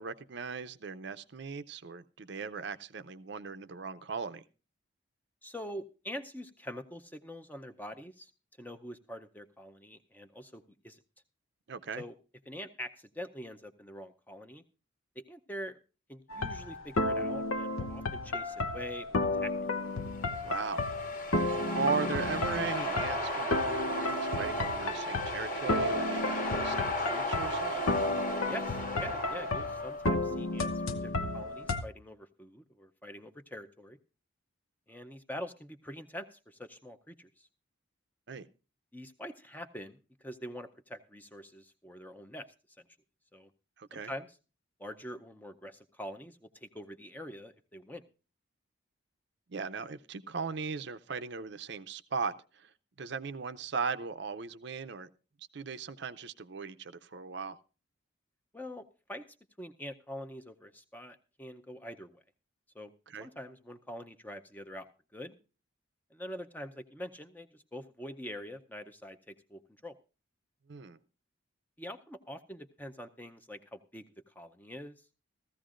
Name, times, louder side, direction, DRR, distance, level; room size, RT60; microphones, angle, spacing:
voice 1, 0.0-4.4 11.7-12.0 20.4-20.9 21.7-27.8 38.3-38.5 43.8-44.1 49.5-52.7 53.0-55.1 55.5-57.6 63.1-63.3 70.7-71.0, right 5 dB, 55° right, 11 dB, 0.5 m, -38 dB
voice 2, 5.4-8.3 8.6-11.0 11.9-12.1 12.5-14.6 15.2-15.8 16.1-19.5 28.5-34.0 34.9-37.5 38.9-42.5 42.8-42.9 43.3-43.5 43.9-44.3 44.8-48.0 58.5-59.2 59.6-62.2 62.7-62.9 63.2-64.9 65.1-65.4 66.1-69.9 71.8-74.9, equal, 10° left, 7 dB, 0.6 m, -45 dB
sound 1, 16.3-31.8, left 2 dB, 90° left, 0.9 m, -33 dB
sound 2, 20.2-30.1, equal, 45° left, 1.5 m, -35 dB
15.5 x 14.5 x 2.5 m, 0.34 s
head